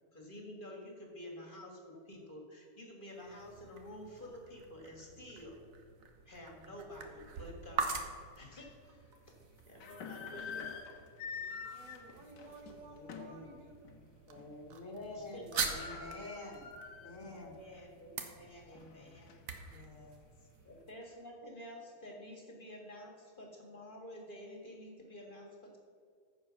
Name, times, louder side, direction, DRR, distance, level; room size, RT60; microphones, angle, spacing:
voice 1, 0.1-5.6 6.3-9.4 9.7-10.9 15.1-16.1 17.0-19.4 20.6-25.8, left 1 dB, 30° left, 0 dB, 1.8 m, -50 dB
sound 1, 3.1-20.9, right 5 dB, 55° right, 1.3 m, -45 dB
sound 2, 7.9-8.0 8.6-8.7 9.6-13.4 13.8-14.0 14.4-14.8 15.0-15.1 15.3-17.3 17.7-17.8 18.4-19.7, left 5 dB, 75° left, 1.6 m, -46 dB
voice 2, 11.2-13.9, right 2 dB, 80° right, 3 dB, 2.0 m, -54 dB
voice 3, 13.0-13.5 14.3-16.7 17.0-17.6 18.7-19.2 19.7-20.3, left 2 dB, 45° left, 1 dB, 1.6 m, -48 dB
14.5 x 5.1 x 5.9 m, 2.2 s
omnidirectional pair, 1.9 m